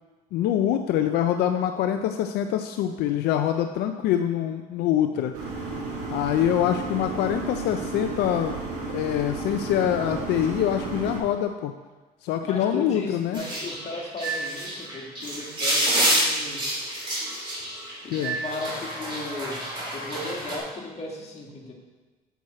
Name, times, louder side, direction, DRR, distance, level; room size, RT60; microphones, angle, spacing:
voice 1, 0.3-5.3 6.1-8.6 8.9-11.7 12.2-13.4 18.1-18.4, left 10 dB, 80° left, 7 dB, 0.5 m, -25 dB
sound 1, 5.3-11.2, right 3 dB, 80° right, 2.3 m, -33 dB
voice 2, 12.4-16.7 18.0-19.6 19.9-21.7, left 2 dB, 40° left, -1 dB, 1.9 m, -36 dB
sound 2, 13.3-20.6, right 1 dB, 30° right, 2.9 m, -28 dB
8.1 x 6.3 x 4.2 m, 1.3 s
cardioid pair, 110°, 17 cm